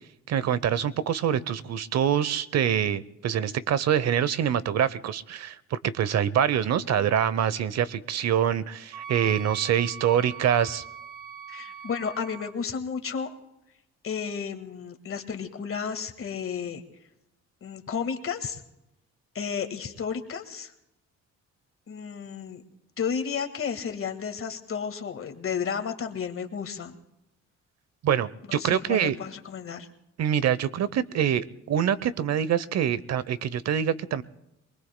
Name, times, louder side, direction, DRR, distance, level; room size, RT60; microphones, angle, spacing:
voice 1, 0.3-10.8 28.0-29.2 30.2-34.2, right 9 dB, 60° right, 17 dB, 0.8 m, -25 dB
Wind instrument woodwind instrument, 8.9-12.5, right 8 dB, 90° right, 0.9 m, -41 dB
voice 2, 11.5-13.3 14.0-16.8 17.6-18.6 19.3-20.7 21.9-22.6 23.0-27.0 28.5-29.9, left 6 dB, 45° left, 6 dB, 1.7 m, -32 dB
26.0 x 20.5 x 2.2 m, 0.87 s
cardioid pair, 90°, 30 cm